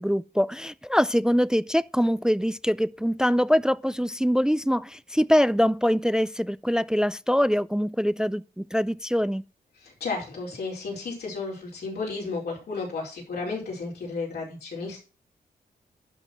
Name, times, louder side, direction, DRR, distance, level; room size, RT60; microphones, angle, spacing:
voice 1, 0.0-9.4, equal, 5° right, 0.3 m, -23 dB
voice 2, 9.8-15.0, left 4 dB, 80° left, 4.7 m, -33 dB
11.0 x 4.4 x 6.0 m
cardioid pair, 90°, 16 cm